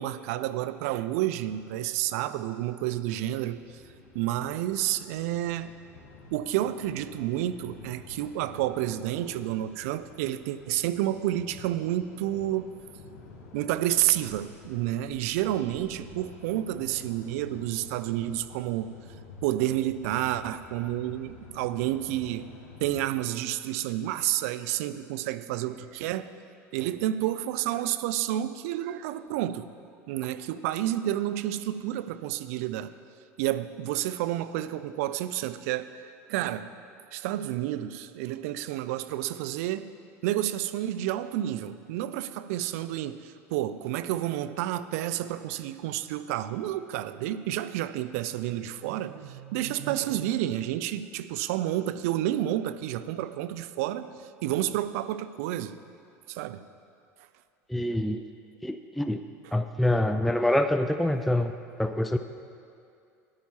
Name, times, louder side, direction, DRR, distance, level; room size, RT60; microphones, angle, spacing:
voice 1, 0.0-3.6 4.1-5.7 6.3-12.7 13.5-18.9 19.4-22.5 22.8-26.3 26.7-29.7 30.1-32.9 33.4-36.7 37.1-39.9 40.2-55.7 56.3-56.7, right 13 dB, 65° right, 13 dB, 0.4 m, -30 dB
sound 1, 3.5-23.1, left 3 dB, 70° left, 2.6 m, -50 dB
voice 2, 57.7-58.2 58.6-59.2 59.5-61.5 61.8-62.2, left 1 dB, ahead, 7 dB, 0.3 m, -25 dB
13.5 x 10.5 x 2.9 m, 2.4 s
hypercardioid pair, 80°, 8 cm